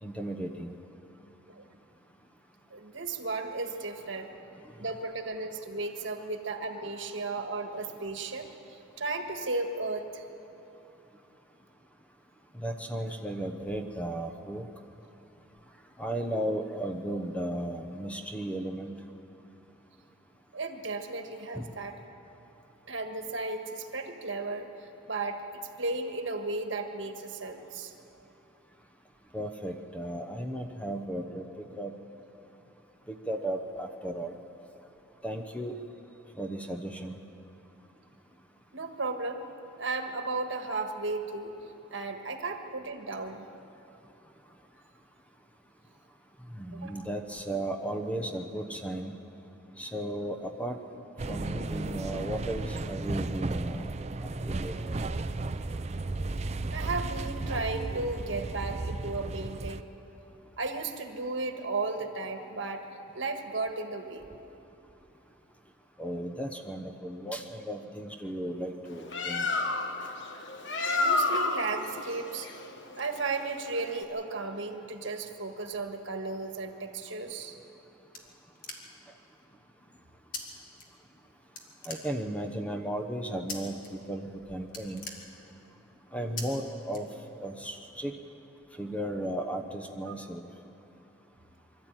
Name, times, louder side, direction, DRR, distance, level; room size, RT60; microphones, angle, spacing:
voice 1, 0.0-0.7 12.5-14.7 16.0-19.0 21.5-21.7 29.3-31.9 33.1-34.4 35.2-35.7 36.4-37.2 46.5-49.2 49.8-50.8 51.3-53.9 54.5-54.7 66.0-69.5 81.8-85.0 86.1-87.1 87.4-88.1 88.8-90.5, right 1 dB, 5° left, 5 dB, 0.9 m, -35 dB
voice 2, 2.7-4.3 4.8-10.2 20.5-22.0 22.9-25.4 25.8-27.9 38.7-39.4 39.8-41.5 41.9-43.4 46.7-47.0 56.7-59.9 60.6-62.9 63.1-64.3 71.0-72.5 73.0-77.6 90.1-90.2, right 3 dB, 70° right, 5 dB, 1.6 m, -34 dB
sound 1, 51.2-59.8, right 2 dB, 35° right, 0.5 m, -34 dB
Bird, 68.9-74.0, left 3 dB, 65° left, 1.2 m, -31 dB
sound 2, 77.6-79.2 80.3-80.4 80.8-81.3 81.6-82.5 83.5-83.9 84.2-84.4 84.6-85.8 86.4-86.5 86.9-87.6, left 3 dB, 45° left, 2.2 m, -42 dB
24.5 x 13.0 x 8.9 m, 2.9 s
head